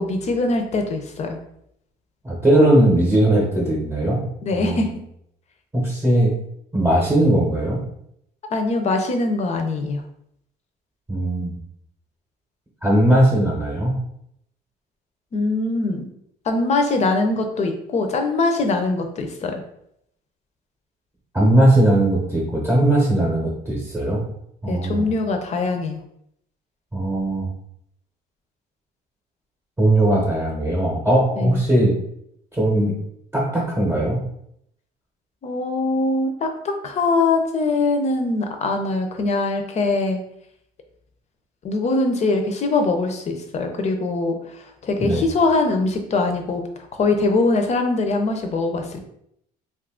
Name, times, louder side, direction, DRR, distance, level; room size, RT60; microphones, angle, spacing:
voice 1, 0.0-1.4 4.4-4.9 8.5-10.0 15.3-16.1 16.5-19.6 24.7-26.0 31.4-31.6 35.4-40.2 41.6-44.4 44.8-46.7 46.9-49.0, left 3 dB, 40° left, 5 dB, 0.6 m, -22 dB
voice 2, 2.2-4.2 4.5-4.9 5.7-6.3 6.7-7.8 11.1-11.5 12.8-14.0 21.3-24.2 24.6-25.1 26.9-27.5 29.8-31.9 32.5-32.9 33.3-34.2 45.0-45.2, right 1 dB, 15° right, -4 dB, 0.8 m, -19 dB
2.6 x 2.5 x 3.6 m, 0.74 s
cardioid pair, 110°, 17 cm